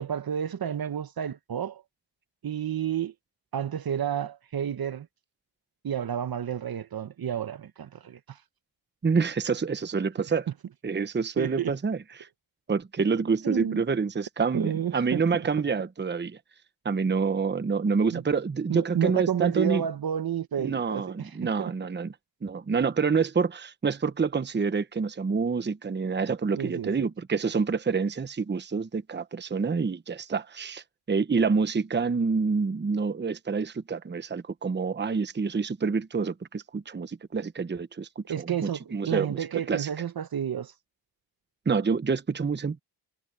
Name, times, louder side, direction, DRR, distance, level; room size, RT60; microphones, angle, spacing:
voice 1, 0.0-1.8 2.4-3.1 3.5-5.1 5.8-8.4 11.4-11.7 13.4-13.8 14.5-15.5 18.1-18.2 18.7-21.7 26.5-27.1 38.3-40.7, right 9 dB, 50° right, 1.2 m, -30 dB
voice 2, 9.0-10.4 10.8-12.3 12.7-16.4 16.8-19.8 20.6-22.1 22.4-39.4 39.7-39.9 41.7-42.8, right 5 dB, 25° right, 1.0 m, -27 dB
cardioid pair, 80°, 46 cm